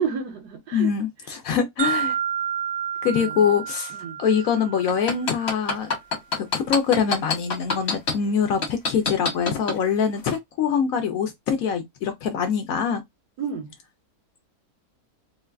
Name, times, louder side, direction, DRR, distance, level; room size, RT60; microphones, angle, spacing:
voice 1, 0.0-0.9 1.3-1.4 3.0-4.2 13.4-13.7, right 6 dB, 75° right, 1.7 m, -31 dB
voice 2, 0.7-2.2 3.0-3.9 4.2-5.9 6.3-13.0, left 7 dB, 70° left, 0.9 m, -24 dB
sound 1, 1.8-5.8, right 9 dB, 50° right, 1.1 m, -30 dB
sound 2, 4.9-8.1 8.6-9.8 10.2-10.4, left 4 dB, 45° left, 1.3 m, -24 dB
3.8 x 2.2 x 2.2 m
omnidirectional pair, 1.8 m